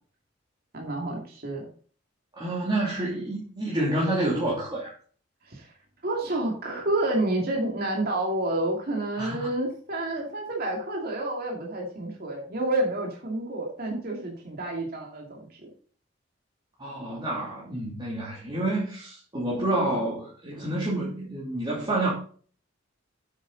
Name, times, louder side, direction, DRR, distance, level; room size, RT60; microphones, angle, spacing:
voice 1, 0.7-1.7 5.4-5.7 6.0-15.7, right 1 dB, 50° right, -1 dB, 2.6 m, -29 dB
voice 2, 2.4-4.9 9.2-9.5 16.8-22.1, right 1 dB, 25° right, -5 dB, 2.9 m, -28 dB
9.5 x 8.1 x 4.1 m, 0.43 s
head